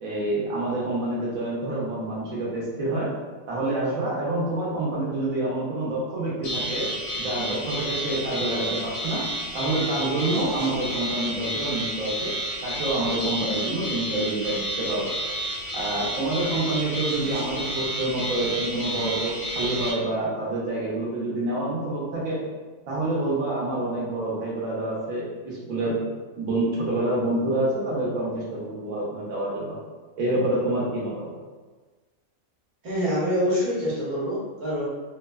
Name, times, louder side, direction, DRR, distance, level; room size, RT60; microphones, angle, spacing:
voice 1, 0.0-3.2 3.5-9.2 9.5-12.3 12.6-15.1 15.7-22.4 22.9-26.0 26.4-29.8 30.2-31.3, right 2 dB, 75° right, -4 dB, 1.1 m, -27 dB
sound 1, 6.4-19.9, right 1 dB, 55° left, 0.6 m, -31 dB
voice 2, 32.8-34.8, equal, 90° right, -10 dB, 1.3 m, -25 dB
3.2 x 2.0 x 2.2 m, 1.3 s
omnidirectional pair, 1.5 m